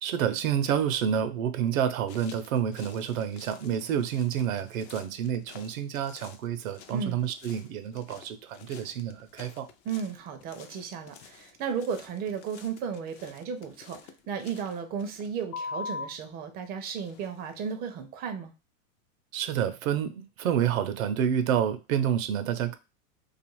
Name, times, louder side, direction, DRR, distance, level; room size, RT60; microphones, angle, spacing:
voice 1, 0.0-9.7 19.3-22.8, right 9 dB, 75° right, 0.6 m, -29 dB
sound 1, 2.1-16.3 16.9-17.7, left 5 dB, 40° left, 0.4 m, -46 dB
voice 2, 9.9-18.5, right 6 dB, 25° right, 0.4 m, -34 dB
2.4 x 2.4 x 3.0 m
hypercardioid pair, 110°, 41 cm